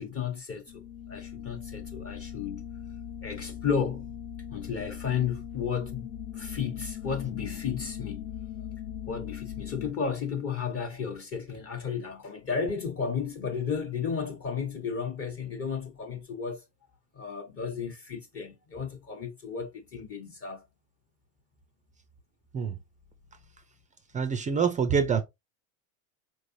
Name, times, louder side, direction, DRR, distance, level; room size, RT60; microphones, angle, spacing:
voice 1, 0.0-2.7 3.2-4.1 4.5-6.1 6.3-8.7 9.1-16.6 17.1-20.7, left 6 dB, 30° left, 0.9 m, -33 dB
sound 1, 0.7-9.9, left 10 dB, 85° left, 0.9 m, -40 dB
voice 2, 24.1-25.2, right 6 dB, 20° right, 0.3 m, -25 dB
4.4 x 3.1 x 2.6 m
supercardioid pair, 115°, 44 cm